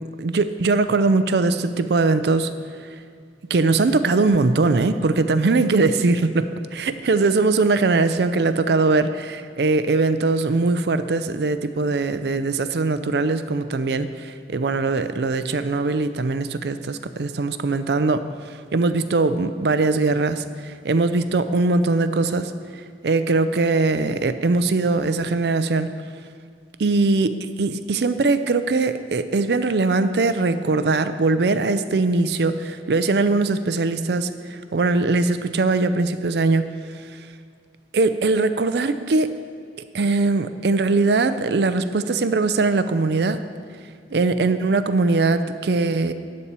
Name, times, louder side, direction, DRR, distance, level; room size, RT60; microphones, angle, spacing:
voice 1, 0.2-2.5 3.5-18.2 18.7-22.5 23.0-25.9 26.8-36.6 37.9-39.3 39.9-43.4 44.1-46.1, right 3 dB, 65° right, 11 dB, 0.5 m, -21 dB
12.5 x 4.4 x 8.1 m, 2.1 s
head